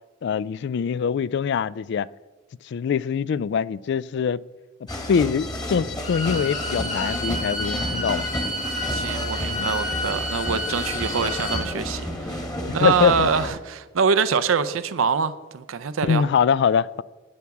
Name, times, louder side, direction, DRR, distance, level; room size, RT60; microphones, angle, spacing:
voice 1, 0.2-2.1 2.6-4.4 5.1-8.3 9.5-9.7 12.8-13.3 16.0-17.0, left 6 dB, 60° left, 0.3 m, -23 dB
sound 1, 4.9-13.5, left 1 dB, 20° left, 1.6 m, -31 dB
Bowed string instrument, 6.0-11.7, left 1 dB, 40° left, 2.9 m, -30 dB
voice 2, 8.9-16.2, right 6 dB, 90° right, 0.5 m, -25 dB
20.0 x 7.1 x 4.7 m
head